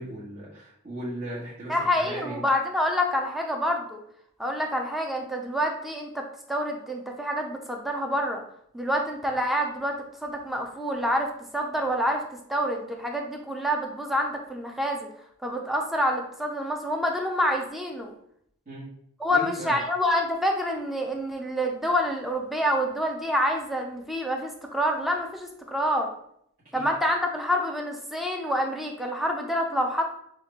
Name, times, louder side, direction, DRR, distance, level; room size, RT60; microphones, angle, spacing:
voice 1, 0.0-2.4 18.6-18.9 19.3-19.8 26.7-26.9, right 1 dB, 40° right, -10 dB, 1.4 m, -37 dB
voice 2, 1.7-4.0 4.4-8.4 8.7-12.2 12.5-15.1 15.4-18.1 19.2-26.1 26.7-30.0, equal, ahead, 2 dB, 0.6 m, -27 dB
5.5 x 2.4 x 3.2 m, 0.68 s
head